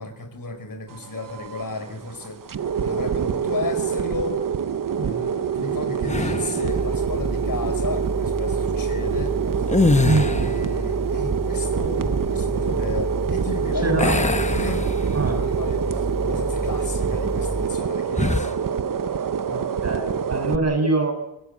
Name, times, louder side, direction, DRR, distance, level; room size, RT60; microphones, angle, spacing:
voice 1, 0.0-2.4 2.8-4.4 5.0-9.4 10.0-14.9 15.3-18.6, left 3 dB, 60° left, 8 dB, 4.7 m, -33 dB
sound 1, 0.9-20.6, right 7 dB, 60° right, 0.8 m, -26 dB
sound 2, 6.1-6.7 9.6-10.7 14.0-15.4 15.9-16.1 18.1-18.6, left 3 dB, 20° left, 0.9 m, -23 dB
sound 3, 6.7-17.7, right 1 dB, 15° right, 3.4 m, -30 dB
voice 2, 10.0-10.4 13.8-14.2 15.1-15.4 19.5-21.1, right 3 dB, 40° right, 4 dB, 6.7 m, -24 dB
25.0 x 16.0 x 8.4 m, 0.89 s
wide cardioid pair, 110°, 38 cm